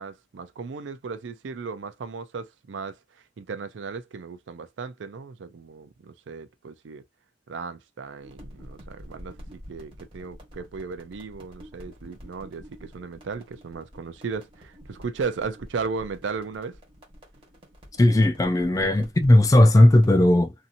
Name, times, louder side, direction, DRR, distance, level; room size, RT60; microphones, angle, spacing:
voice 1, 0.0-3.0 3.4-7.0 7.5-16.8, right 5 dB, 75° right, 0.4 m, -35 dB
sound 1, 8.2-20.1, equal, 30° right, 1.4 m, -47 dB
voice 2, 18.0-20.5, left 1 dB, 20° left, 0.3 m, -17 dB
2.7 x 2.7 x 2.5 m
head